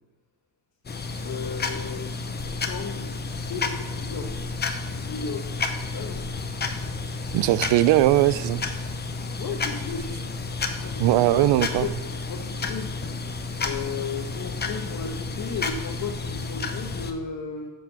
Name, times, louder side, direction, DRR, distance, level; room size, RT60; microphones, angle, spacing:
sound 1, 0.8-17.1, left 4 dB, 25° left, 0.9 m, -31 dB
voice 1, 1.2-2.1 2.6-4.5 4.8-5.5 5.8-6.3 9.3-10.1 10.8-11.9 12.3-12.9 13.6-17.7, left 5 dB, 45° left, 0 dB, 1.3 m, -35 dB
voice 2, 7.3-8.6 11.0-11.9, right 15 dB, 70° right, 18 dB, 0.5 m, -20 dB
9.1 x 5.3 x 6.9 m, 1.2 s
cardioid pair, 105°, 44 cm